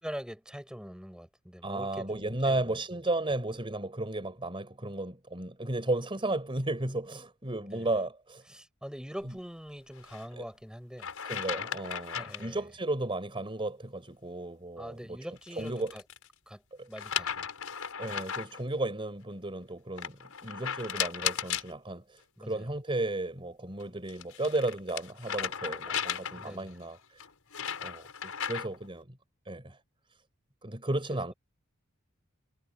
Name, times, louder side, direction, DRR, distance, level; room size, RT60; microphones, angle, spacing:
voice 1, 0.0-3.0 7.6-7.9 8.5-11.1 12.1-12.6 14.8-16.0 16.5-16.6 16.9-17.5 22.4-22.7 26.3-26.7 31.1-31.2, equal, 5° right, 6.5 m, -43 dB
voice 2, 1.6-8.4 10.3-10.5 11.2-15.2 15.6-15.9 16.8-16.9 18.0-27.0 27.8-29.1 29.5-29.8 30.6-31.3, right 2 dB, 25° right, 3.9 m, -34 dB
sound 1, 10.0-10.2 11.0-12.5 15.4-16.3 17.0-18.6 20.0-21.7 23.8-26.6 27.2-28.9, left 8 dB, 90° left, 5.2 m, -35 dB
head